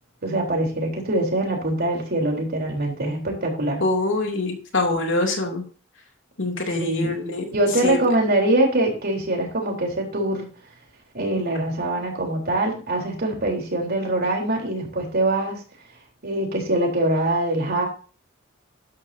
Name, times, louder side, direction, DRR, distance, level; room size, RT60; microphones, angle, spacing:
voice 1, 0.2-3.8 6.8-7.1 7.5-10.5 11.1-15.6 16.2-17.9, right 1 dB, 50° right, 1 dB, 3.7 m, -23 dB
voice 2, 3.8-5.6 6.4-7.5 7.8-8.0, left 2 dB, 65° left, 2 dB, 2.7 m, -24 dB
13.0 x 11.0 x 2.8 m, 0.37 s
head